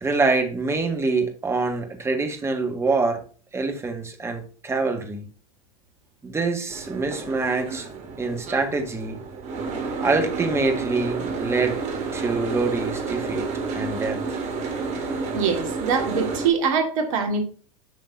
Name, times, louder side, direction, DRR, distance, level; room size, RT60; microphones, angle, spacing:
voice 1, 0.0-3.2 3.5-5.3 6.2-7.9 8.2-9.2 10.0-11.8 12.1-13.5 13.7-14.4, right 3 dB, 15° right, 1.7 m, -25 dB
Boat Water vehicle, 6.7-16.5, right 4 dB, 40° right, 2.5 m, -30 dB
voice 2, 15.3-17.4, right 5 dB, 60° right, 2.0 m, -23 dB
11.0 x 6.4 x 2.7 m
figure-of-eight pair, 90°, 18 cm